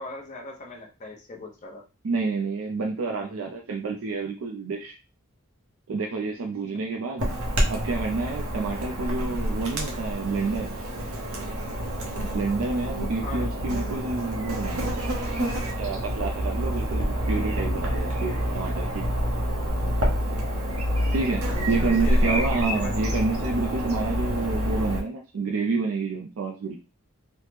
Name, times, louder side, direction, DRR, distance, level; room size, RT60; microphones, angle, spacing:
voice 1, 0.0-1.9 13.2-13.5 21.8-22.9, left 2 dB, 35° left, 1 dB, 0.6 m, -39 dB
voice 2, 2.0-4.9 5.9-7.3 7.7-10.7 12.3-14.9 15.6-19.0 21.1-26.8, right 4 dB, 70° right, 1 dB, 0.4 m, -29 dB
Chirp tweet / Buzz, 7.2-25.0, equal, 85° right, 0.8 m, -27 dB
3.1 x 2.0 x 3.2 m, 0.30 s
head